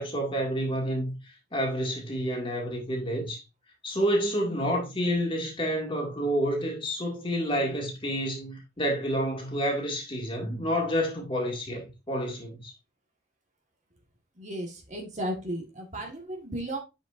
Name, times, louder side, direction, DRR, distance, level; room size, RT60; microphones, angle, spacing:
voice 1, 0.0-3.4 3.8-12.7, equal, 30° left, 2.0 m, -29 dB
voice 2, 14.4-16.8, right 1 dB, 40° right, 1.5 m, -34 dB
7.4 x 5.5 x 2.5 m
head